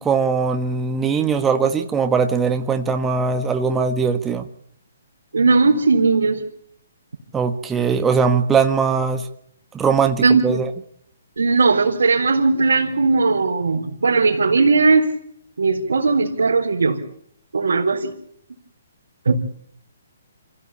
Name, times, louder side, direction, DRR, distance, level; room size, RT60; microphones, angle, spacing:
voice 1, 0.0-4.5 7.3-9.3 9.7-10.7, right 5 dB, 10° right, 5 dB, 1.4 m, -20 dB
voice 2, 5.3-6.4 10.2-10.6 11.4-15.1 15.6-17.0 17.5-18.1 19.3-19.4, right 4 dB, 90° right, -3 dB, 4.1 m, -17 dB
26.5 x 16.0 x 8.7 m, 0.69 s
hypercardioid pair, 155°, 0 cm